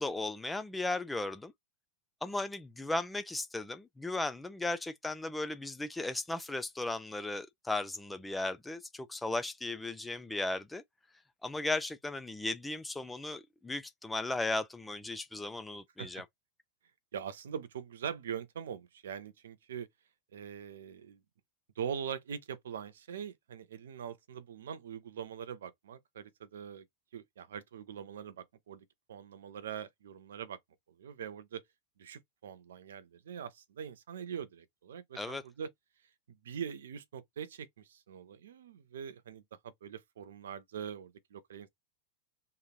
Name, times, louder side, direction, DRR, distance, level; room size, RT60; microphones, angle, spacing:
voice 1, 0.0-1.5 2.2-10.8 11.4-16.2 35.1-35.4, left 2 dB, 5° left, 0.3 m, -36 dB
voice 2, 17.1-19.9 20.3-21.2 21.8-26.8 27.1-30.6 31.0-31.6 32.0-35.7 36.3-41.7, right 8 dB, 60° right, 0.4 m, -43 dB
3.0 x 2.6 x 2.3 m
figure-of-eight pair, 90°, 0 cm